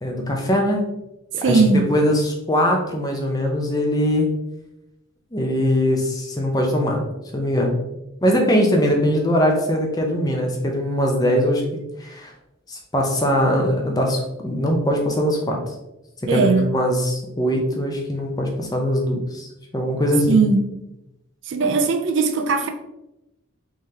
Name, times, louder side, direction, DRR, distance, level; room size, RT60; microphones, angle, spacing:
voice 1, 0.0-0.8 1.3-4.3 5.3-7.0 7.3-7.8 8.2-12.3 12.7-15.6 16.3-19.5 19.7-20.4, equal, 20° left, 1 dB, 0.5 m, -21 dB
voice 2, 1.4-1.9 16.3-16.7 20.3-20.6 21.5-22.7, right 4 dB, 60° right, 6 dB, 0.4 m, -18 dB
3.6 x 3.3 x 2.7 m, 0.90 s
head